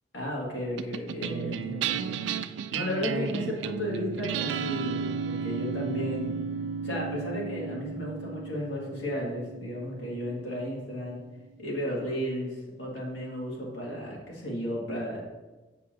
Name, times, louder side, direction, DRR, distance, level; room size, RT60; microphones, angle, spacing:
voice 1, 0.1-2.3 2.7-6.4 6.8-11.2 11.6-15.2, equal, 80° left, -3 dB, 1.8 m, -34 dB
sound 1, 0.8-11.4, right 6 dB, 80° right, 0.3 m, -34 dB
7.4 x 5.5 x 2.6 m, 1.2 s
head